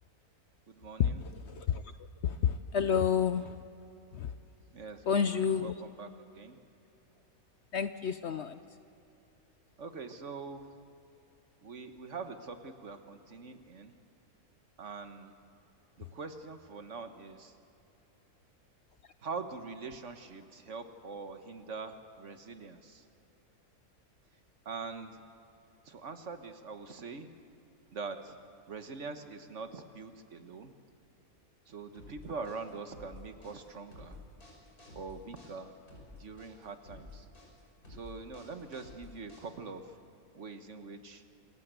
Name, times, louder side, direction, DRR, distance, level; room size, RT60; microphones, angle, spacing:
voice 1, 0.7-1.2 4.7-6.6 9.8-10.7 11.6-13.9 14.8-15.3 16.0-17.6 19.2-23.1 24.6-25.2 25.8-27.3 27.9-28.4 28.7-30.7 31.7-34.2 34.9-35.7 36.1-37.3 37.9-40.0 40.3-41.2, right 4 dB, 55° right, 8 dB, 1.5 m, -43 dB
voice 2, 2.2-3.4 5.1-5.7 7.7-8.5, left 7 dB, 60° left, 11 dB, 0.8 m, -29 dB
sound 1, 31.9-39.8, left 2 dB, 75° left, 6.4 m, -51 dB
27.0 x 15.5 x 8.1 m, 2.7 s
omnidirectional pair, 1.6 m